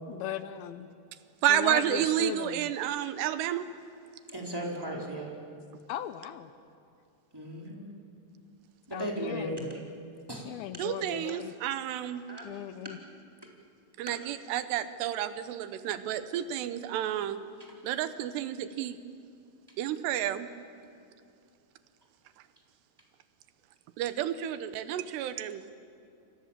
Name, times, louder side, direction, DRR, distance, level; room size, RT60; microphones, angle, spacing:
voice 1, 0.1-0.9 1.5-2.7 5.9-6.5 8.9-9.7 10.4-11.5 12.4-13.0, left 11 dB, 75° left, 11 dB, 2.5 m, -38 dB
voice 2, 1.4-3.7 10.8-12.2 14.0-17.4 17.8-19.0 19.8-20.5 24.0-25.7, right 11 dB, 90° right, 11 dB, 3.2 m, -30 dB
voice 3, 4.3-5.3 7.3-7.9 8.9-9.8 10.3-10.5 12.3-12.5, equal, 5° right, -2 dB, 3.7 m, -36 dB
29.5 x 25.0 x 7.5 m, 2.5 s
omnidirectional pair, 4.7 m